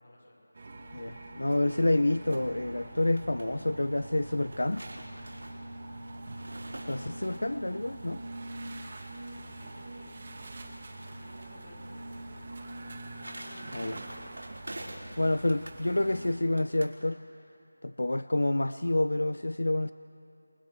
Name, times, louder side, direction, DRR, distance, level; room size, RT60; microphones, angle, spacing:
voice 1, 0.0-0.8 8.3-8.9 9.2-14.6, left 1 dB, 35° left, -2 dB, 5.2 m, -56 dB
sound 1, 0.5-16.3, right 2 dB, 25° right, 1.6 m, -44 dB
voice 2, 0.9-4.8 6.8-8.2 13.7-14.0 15.2-17.2 17.8-19.9, left 1 dB, 90° left, 13 dB, 0.4 m, -28 dB
sound 2, 2.9-3.5 4.3-7.6 12.7-15.2 15.5-15.8 16.6-17.0, right 1 dB, 90° right, 4.6 m, -46 dB
28.0 x 20.5 x 4.7 m, 2.9 s
figure-of-eight pair, 180°, 0 cm